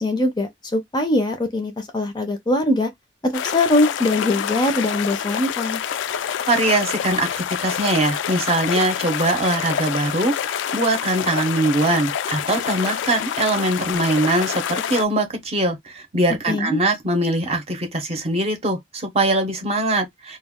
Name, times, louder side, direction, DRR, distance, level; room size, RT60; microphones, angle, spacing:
voice 1, 0.0-2.9 3.2-5.8 16.5-16.8, left 2 dB, 25° left, 0.5 m, -22 dB
sound 1, 3.3-15.1, left 9 dB, 80° left, 0.3 m, -27 dB
voice 2, 6.5-10.3 10.7-20.4, right 2 dB, 35° right, 0.7 m, -22 dB
2.3 x 2.1 x 3.5 m
head